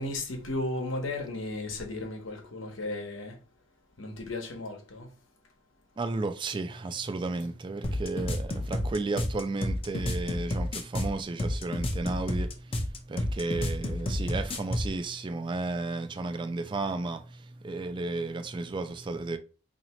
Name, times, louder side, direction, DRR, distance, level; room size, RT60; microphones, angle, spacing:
voice 1, 0.0-3.4 4.0-5.1 14.4-14.5, left 2 dB, 75° left, 1.0 m, -35 dB
voice 2, 6.0-19.4, right 3 dB, 25° right, 0.3 m, -33 dB
sound 1, 7.8-14.9, left 1 dB, 30° left, 0.5 m, -30 dB
2.9 x 2.8 x 4.2 m
head